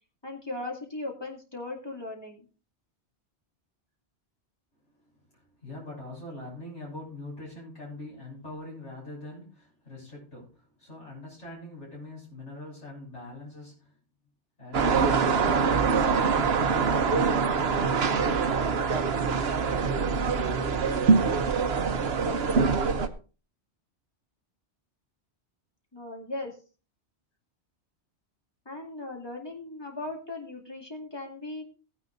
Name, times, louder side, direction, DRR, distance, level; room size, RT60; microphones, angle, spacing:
voice 1, 0.2-2.5 25.9-26.6 28.7-31.6, left 2 dB, 20° left, 0 dB, 2.5 m, -38 dB
voice 2, 5.0-14.0 14.6-17.6 18.0-19.0, left 2 dB, 80° left, -4 dB, 6.7 m, -43 dB
Grønlandsleiret at night (X+Y), 14.7-23.1, right 5 dB, 65° right, 1.1 m, -24 dB
17.0 x 9.8 x 2.6 m, 0.35 s
omnidirectional pair, 1.2 m